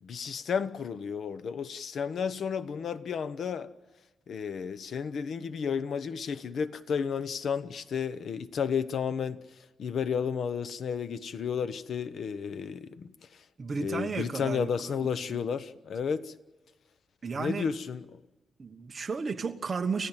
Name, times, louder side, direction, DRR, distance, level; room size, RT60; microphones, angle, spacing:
voice 1, 0.0-3.7 4.3-9.4 9.8-13.4 13.8-16.3 17.4-18.0, left 6 dB, 60° left, 0.9 m, -32 dB
voice 2, 13.6-15.4 17.2-17.7 18.6-20.1, right 4 dB, 30° right, 1.3 m, -34 dB
30.0 x 15.5 x 8.9 m
wide cardioid pair, 170°, 0 cm